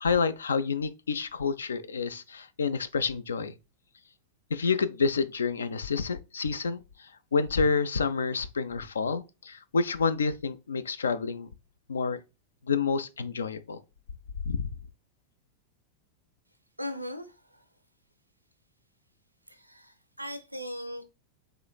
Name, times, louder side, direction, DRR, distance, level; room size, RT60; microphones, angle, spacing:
voice 1, 0.0-3.5 4.5-11.5 11.9-12.2 12.7-13.8 14.4-14.7, left 5 dB, 70° left, 0.3 m, -29 dB
voice 2, 16.8-17.6 19.5-21.0, equal, 90° right, 0.5 m, -39 dB
4.9 x 3.0 x 2.3 m
figure-of-eight pair, 90°, 0 cm